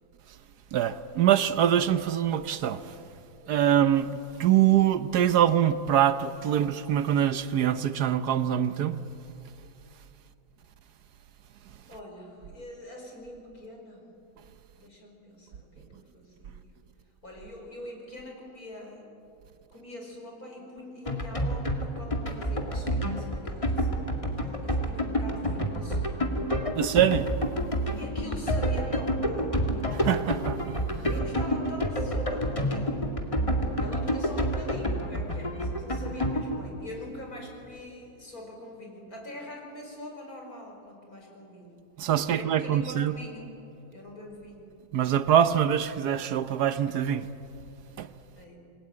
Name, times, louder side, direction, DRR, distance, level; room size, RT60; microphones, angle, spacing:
voice 1, 0.7-2.9 3.5-4.1 4.4-9.0 26.7-27.3 29.9-30.8 42.0-43.1 44.9-47.3 48.0-48.1, right 10 dB, 70° right, 1.3 m, -24 dB
voice 2, 11.9-14.1 14.8-16.7 17.2-19.0 19.7-26.3 27.9-29.6 31.1-33.1 33.8-41.9 42.3-43.5 43.9-44.7 48.4-48.6, left 1 dB, 55° left, 5.6 m, -43 dB
sound 1, 21.1-36.6, equal, 20° left, 2.1 m, -28 dB
28.0 x 20.5 x 8.8 m
omnidirectional pair, 1.8 m